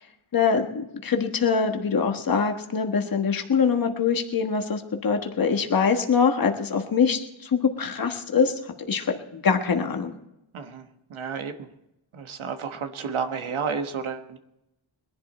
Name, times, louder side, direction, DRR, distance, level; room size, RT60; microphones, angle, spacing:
voice 1, 0.3-8.5 8.9-10.1, left 6 dB, 45° left, 4 dB, 1.4 m, -24 dB
voice 2, 10.5-11.7 12.1-14.4, right 6 dB, 90° right, 6 dB, 1.3 m, -31 dB
20.5 x 11.5 x 4.3 m, 0.87 s
wide cardioid pair, 100°, 47 cm